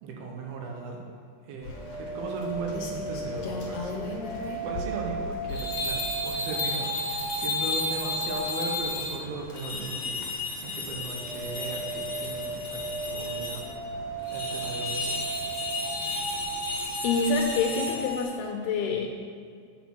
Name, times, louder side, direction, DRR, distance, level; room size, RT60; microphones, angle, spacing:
voice 1, 0.0-1.0 1.4-13.8 14.3-15.3, right 3 dB, 70° right, 1 dB, 2.9 m, -37 dB
sound 1, 1.5-8.9 10.9-18.2, right 3 dB, 45° right, 3.3 m, -36 dB
Rain, 1.6-18.1, left 3 dB, 65° left, 2.2 m, -42 dB
sound 2, 5.5-9.2 9.5-13.6 14.3-18.2, left 3 dB, 40° left, 1.5 m, -33 dB
voice 2, 17.0-19.1, left 4 dB, 80° left, 3 dB, 2.6 m, -27 dB
8.6 x 6.5 x 6.1 m, 2.2 s
omnidirectional pair, 4.6 m